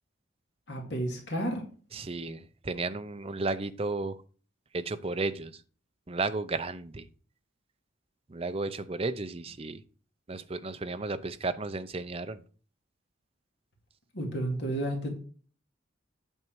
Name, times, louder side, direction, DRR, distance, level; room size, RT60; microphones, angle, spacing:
voice 1, 0.7-1.6 14.1-15.2, right 1 dB, 55° left, 1 dB, 2.5 m, -31 dB
voice 2, 1.9-4.2 4.7-5.6 6.1-7.1 8.3-9.8 10.3-12.4, right 3 dB, 30° right, 11 dB, 0.6 m, -33 dB
8.8 x 6.4 x 4.6 m, 0.40 s
head